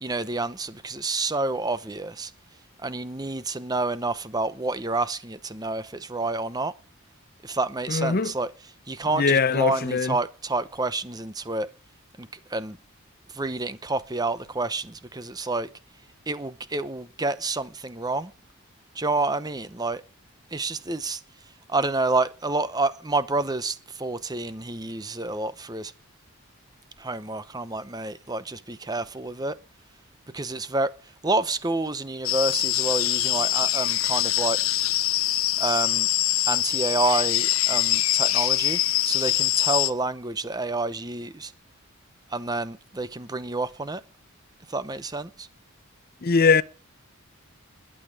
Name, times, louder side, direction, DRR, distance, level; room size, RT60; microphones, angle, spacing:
voice 1, 0.0-2.3 2.8-6.7 7.4-11.7 12.2-12.8 13.3-15.7 16.3-18.3 18.9-20.0 20.5-21.2 21.7-25.9 27.0-29.6 30.3-30.9 31.2-34.6 35.6-36.1 36.4-41.5 42.3-44.0 44.7-45.5, right 2 dB, 20° right, 0.8 m, -29 dB
voice 2, 7.9-8.3 9.1-10.2 46.2-46.6, left 5 dB, 45° left, 0.6 m, -21 dB
sound 1, 32.2-39.9, left 14 dB, 70° left, 0.8 m, -24 dB
21.0 x 8.7 x 4.9 m
head